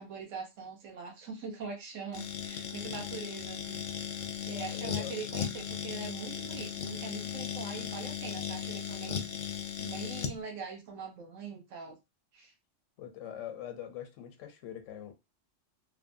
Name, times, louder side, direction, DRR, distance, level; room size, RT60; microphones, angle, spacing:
voice 1, 0.0-3.8 4.5-9.2 9.8-11.9 12.3-12.5, right 5 dB, 85° right, 1.2 m, -42 dB
sound 1, 2.1-10.4, left 8 dB, 60° left, 0.5 m, -37 dB
voice 2, 4.7-5.1 13.0-15.1, left 10 dB, 90° left, 1.0 m, -43 dB
3.1 x 2.1 x 2.5 m
omnidirectional pair, 1.3 m